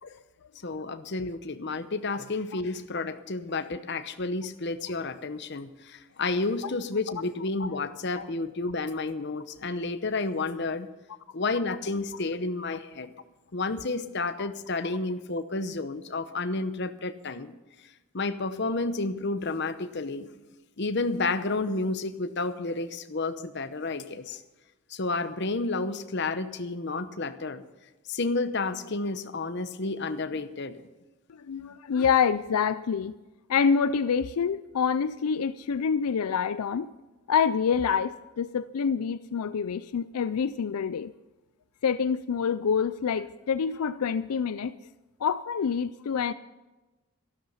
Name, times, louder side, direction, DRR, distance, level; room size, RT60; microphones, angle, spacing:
voice 1, 0.6-10.9 11.3-13.1 13.5-17.5 18.1-20.3 20.8-24.4 24.9-27.6 28.1-30.8, left 3 dB, 50° left, 11 dB, 0.9 m, -31 dB
voice 2, 31.3-33.1 33.5-36.9 37.3-41.1 41.8-44.7 45.2-46.3, left 6 dB, 85° left, 14 dB, 0.4 m, -26 dB
13.5 x 12.5 x 5.6 m, 1.1 s
head